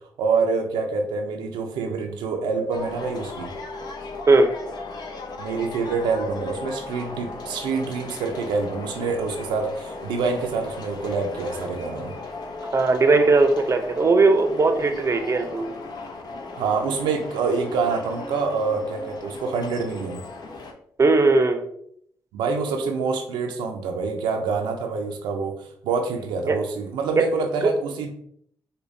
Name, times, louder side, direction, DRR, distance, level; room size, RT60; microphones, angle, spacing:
voice 1, 0.2-3.5 5.4-12.1 16.6-20.2 22.3-28.1, right 4 dB, 90° right, 3 dB, 0.4 m, -26 dB
sound 1, 2.7-20.7, left 3 dB, 60° left, 0.7 m, -37 dB
voice 2, 12.7-15.7 21.0-21.7 26.5-26.6 27.2-27.3, right 3 dB, 40° right, 7 dB, 0.5 m, -18 dB
5.0 x 2.2 x 2.6 m, 0.67 s
supercardioid pair, 55°, 8 cm